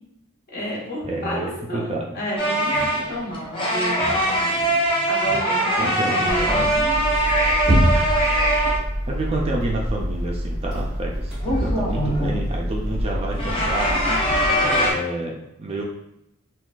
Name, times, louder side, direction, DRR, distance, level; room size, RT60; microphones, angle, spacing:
voice 1, 0.5-4.5 5.1-6.7, equal, 45° left, -6 dB, 1.2 m, -31 dB
voice 2, 1.1-2.2 5.8-6.7 7.9-8.1 9.1-13.9 14.6-15.8, right 2 dB, 25° right, -1 dB, 0.3 m, -29 dB
sound 1, 2.4-8.8 11.4-12.4 13.3-14.9, right 1 dB, 25° left, 0.6 m, -22 dB
sound 2, 6.3-14.9, equal, 5° right, 1.0 m, -26 dB
3.7 x 2.3 x 2.3 m, 0.83 s
head